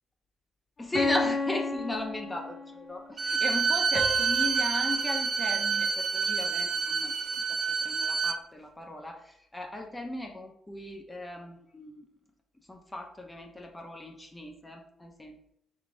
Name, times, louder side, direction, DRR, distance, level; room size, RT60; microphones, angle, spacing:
voice 1, 0.8-7.1 7.5-7.6 7.8-9.2 9.5-12.0 12.7-15.5, left 1 dB, 15° left, 2 dB, 0.6 m, -37 dB
sound 1, 0.9-2.9 3.9-6.3, left 3 dB, 40° left, 1.0 m, -34 dB
Bowed string instrument, 3.2-8.4, right 6 dB, 45° right, 0.4 m, -28 dB
4.6 x 3.6 x 2.6 m, 0.70 s
cardioid pair, 90°, 0 cm